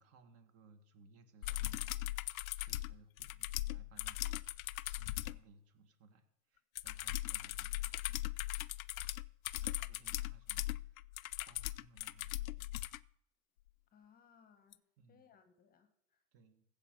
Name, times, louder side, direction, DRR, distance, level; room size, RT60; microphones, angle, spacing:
voice 1, 0.0-8.3 8.6-8.8 9.5-11.0 11.4-12.9 15.0-15.2 16.3-16.6, right 3 dB, 35° right, 8 dB, 1.8 m, -63 dB
sound 1, 1.4-5.4 6.8-13.0 14.7-14.8, left 16 dB, 90° left, 0.6 m, -39 dB
voice 2, 13.9-14.8 15.1-16.2, left 7 dB, 20° left, 10 dB, 1.1 m, -66 dB
15.5 x 5.2 x 6.8 m, 0.78 s
supercardioid pair, 135°, 41 cm